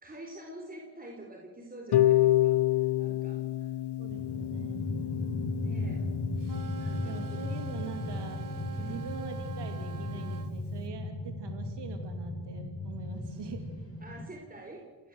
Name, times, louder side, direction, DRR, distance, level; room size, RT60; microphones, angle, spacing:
voice 1, 0.0-3.7 5.6-6.1 6.8-7.4 8.8-9.1 14.0-15.1, right 2 dB, 20° right, 1 dB, 4.5 m, -46 dB
Harp, 1.9-8.0, left 14 dB, 70° left, 1.0 m, -29 dB
voice 2, 4.0-5.1 7.0-13.9, right 5 dB, 80° right, 4 dB, 2.8 m, -44 dB
sound 1, 4.1-14.2, left 2 dB, 35° left, 5.7 m, -36 dB
sound 2, 6.4-10.5, right 8 dB, 50° right, 1.5 m, -46 dB
29.0 x 17.5 x 8.0 m, 1.5 s
cardioid pair, 90°, 41 cm